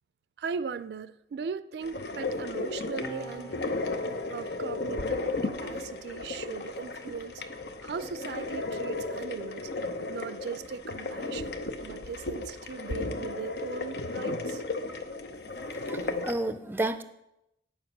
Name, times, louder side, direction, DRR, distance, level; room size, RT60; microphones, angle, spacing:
voice 1, 0.4-3.5 4.3-7.4 7.8-9.7 10.1-11.6 11.8-14.6 16.0-16.1, right 5 dB, 70° right, 0.4 m, -38 dB
sound 1, 1.8-16.3, left 2 dB, 75° left, 0.9 m, -34 dB
sound 2, 3.0-9.9 10.9-12.7, equal, 25° left, 0.9 m, -52 dB
voice 2, 15.6-17.0, right 2 dB, 10° right, 0.5 m, -32 dB
8.9 x 7.1 x 5.9 m
head